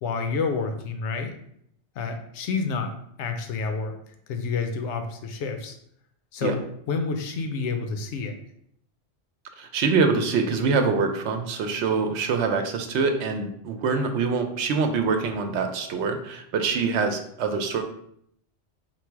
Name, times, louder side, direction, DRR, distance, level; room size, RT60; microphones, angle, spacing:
voice 1, 0.0-1.3 2.0-2.9 3.2-4.0 4.3-5.8 6.3-8.4, left 4 dB, 85° left, 6 dB, 0.9 m, -29 dB
voice 2, 9.6-17.8, right 4 dB, 85° right, 6 dB, 0.9 m, -25 dB
4.3 x 2.0 x 4.5 m, 0.70 s
omnidirectional pair, 1.1 m